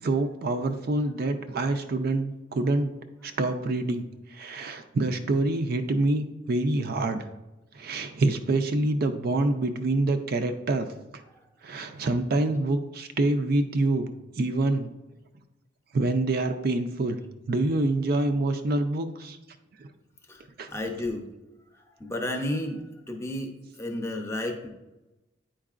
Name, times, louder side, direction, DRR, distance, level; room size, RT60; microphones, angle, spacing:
voice 1, 0.0-2.9 3.2-4.0 4.3-7.3 7.7-10.9 11.6-14.9 15.9-17.2 17.5-19.4 19.8-19.9 20.6-20.7, right 2 dB, 50° right, 7 dB, 0.4 m, -26 dB
voice 2, 20.7-21.3 22.0-22.8 23.1-23.5 23.8-24.7, left 1 dB, 15° left, 3 dB, 0.7 m, -31 dB
8.8 x 4.5 x 2.4 m, 1.0 s
head